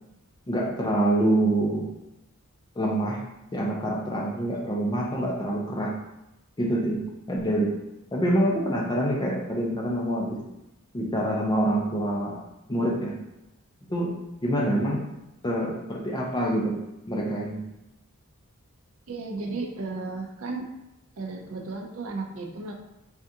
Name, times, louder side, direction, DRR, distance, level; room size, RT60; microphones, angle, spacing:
voice 1, 0.5-1.9 2.8-3.2 3.5-5.9 6.6-7.0 7.3-7.7 8.1-10.4 10.9-12.4 12.7-13.2 13.9-15.1 15.4-16.8 17.1-17.6, right 1 dB, 20° left, -2 dB, 0.4 m, -26 dB
voice 2, 19.1-20.7 21.2-22.7, right 3 dB, 70° right, 2 dB, 0.5 m, -34 dB
3.5 x 2.4 x 2.7 m, 0.93 s
head